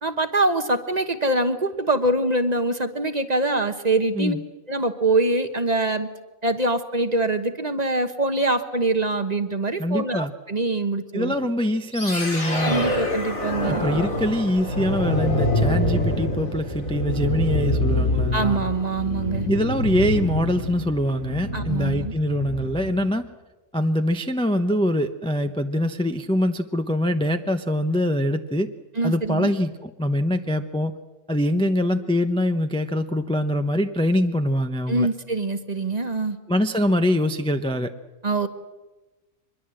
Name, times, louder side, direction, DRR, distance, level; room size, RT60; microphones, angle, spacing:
voice 1, 0.0-4.4 4.7-6.1 6.4-11.3 12.6-13.8 18.3-19.5 21.5-22.1 29.0-29.5 34.9-36.4 38.2-38.5, right 2 dB, 30° right, 9 dB, 1.1 m, -24 dB
voice 2, 9.8-10.3 11.1-12.9 13.6-18.6 19.5-23.3 23.7-28.7 29.0-31.0 31.3-35.1 36.5-37.9, left 1 dB, 5° left, 7 dB, 0.7 m, -23 dB
sound 1, 11.9-23.0, left 1 dB, 75° left, 4.5 m, -26 dB
24.0 x 21.5 x 7.7 m, 1.2 s
omnidirectional pair, 1.4 m